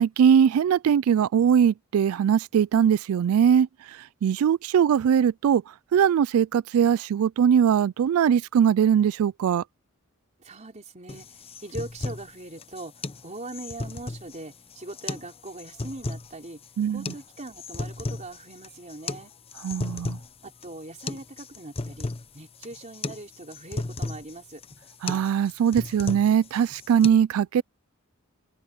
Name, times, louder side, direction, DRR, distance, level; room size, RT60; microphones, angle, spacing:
voice 1, 0.0-3.7 4.2-5.6 5.9-9.6 16.8-17.0 19.6-20.2 25.0-27.6, right 8 dB, 80° right, 0.3 m, -21 dB
voice 2, 10.4-16.6 16.9-19.3 20.4-24.6, right 2 dB, 35° right, 3.8 m, -41 dB
sound 1, 11.1-27.1, left 3 dB, 25° left, 0.7 m, -36 dB
open air
head